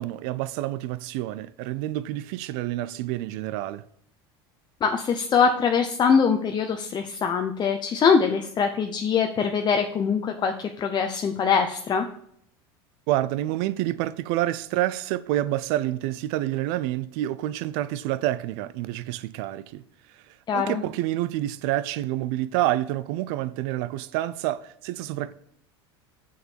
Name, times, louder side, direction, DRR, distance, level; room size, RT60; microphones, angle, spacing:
voice 1, 0.0-3.8 13.1-19.8 20.5-25.3, right 14 dB, 65° right, 0.5 m, -28 dB
voice 2, 4.8-12.1 20.5-20.8, left 6 dB, 35° left, 0.7 m, -23 dB
6.6 x 6.5 x 4.4 m
hypercardioid pair, 90°, 13 cm